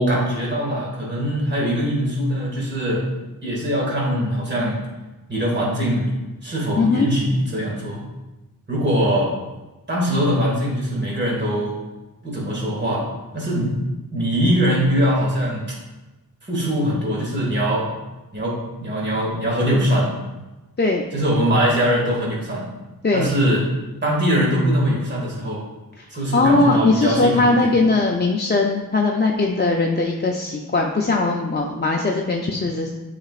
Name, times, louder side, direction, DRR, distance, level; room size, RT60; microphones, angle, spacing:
voice 1, 0.0-3.0 3.4-4.8 5.3-6.1 6.4-8.0 8.7-9.3 9.9-11.8 12.2-13.0 13.3-13.7 14.1-15.6 16.4-17.9 18.3-20.1 21.1-22.7 23.1-23.6 24.0-25.6 26.1-27.7, equal, 30° right, -4 dB, 2.1 m, -22 dB
voice 2, 6.8-7.1 20.8-21.0 23.0-23.3 26.0-26.1 26.3-32.9, left 3 dB, 30° left, 0 dB, 0.6 m, -19 dB
8.7 x 5.0 x 2.5 m, 1.1 s
wide cardioid pair, 75°, 37 cm